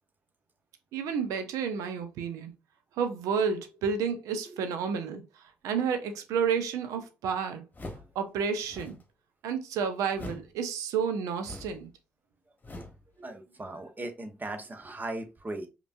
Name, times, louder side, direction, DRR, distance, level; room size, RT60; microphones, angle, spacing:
voice 1, 0.9-2.5 3.0-5.2 5.6-7.6 8.1-9.0 9.4-11.9, right 6 dB, 65° right, 0.7 m, -30 dB
sound 1, 7.7-8.2 8.6-9.1 10.1-10.6 11.4-11.9 12.6-13.1, left 1 dB, 30° left, 1.1 m, -42 dB
voice 2, 13.2-15.7, right 2 dB, 30° right, 1.1 m, -38 dB
5.1 x 3.0 x 2.6 m
figure-of-eight pair, 40°, 6 cm